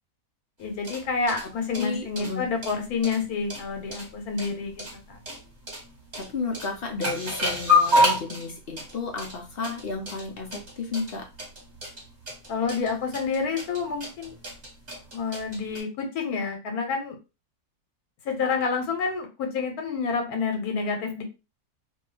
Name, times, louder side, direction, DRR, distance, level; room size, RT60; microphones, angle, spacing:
voice 1, 0.6-5.2 12.5-14.4 15.1-17.2 18.2-21.2, left 5 dB, 85° left, 3 dB, 1.2 m, -28 dB
sound 1, 0.6-15.8, left 2 dB, 30° right, 1.1 m, -29 dB
voice 2, 1.8-2.4 6.2-11.2, left 4 dB, 65° left, 3 dB, 0.6 m, -32 dB
2.7 x 2.3 x 3.1 m, 0.29 s
omnidirectional pair, 1.5 m